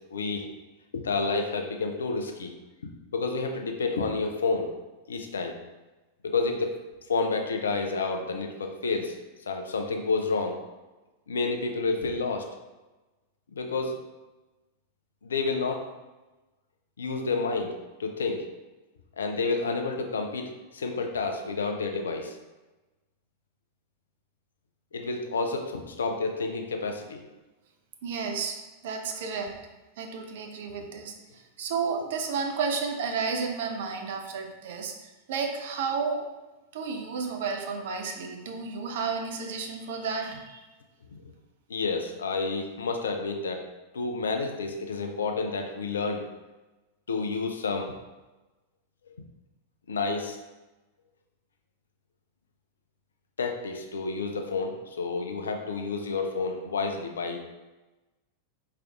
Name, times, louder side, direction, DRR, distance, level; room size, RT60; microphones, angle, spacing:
voice 1, 0.1-0.5 0.9-2.5 3.1-4.7 5.1-5.6 6.2-6.8 7.1-9.2 9.5-10.6 11.3-12.5 13.5-14.0 15.2-15.9 17.0-18.4 19.2-22.4 24.9-27.2 41.7-43.7 43.9-46.3 47.1-47.9 49.9-50.4 53.4-57.4, left 4 dB, 70° left, 4 dB, 0.4 m, -29 dB
voice 2, 28.0-28.6 28.8-29.6 30.0-36.3 36.7-40.6, right 5 dB, 55° right, 4 dB, 0.5 m, -32 dB
4.7 x 3.4 x 2.3 m, 1.1 s
figure-of-eight pair, 90°, 0 cm